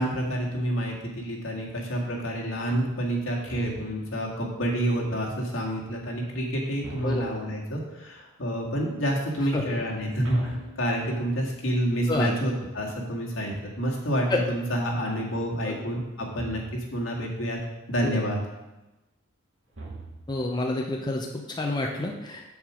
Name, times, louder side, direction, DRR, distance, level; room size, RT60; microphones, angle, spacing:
voice 1, 0.0-17.6 17.9-18.4, equal, 70° left, -2 dB, 1.9 m, -28 dB
sound 1, 3.5-4.2 6.8-7.6 10.2-11.4 16.3-17.0 19.7-20.5, right 3 dB, 70° right, 1.8 m, -43 dB
voice 2, 9.5-9.8 12.1-12.4 14.3-14.4 15.6-15.8 18.0-18.2 20.3-22.4, left 2 dB, 20° left, 0 dB, 0.7 m, -29 dB
7.8 x 7.0 x 5.0 m, 1.0 s
head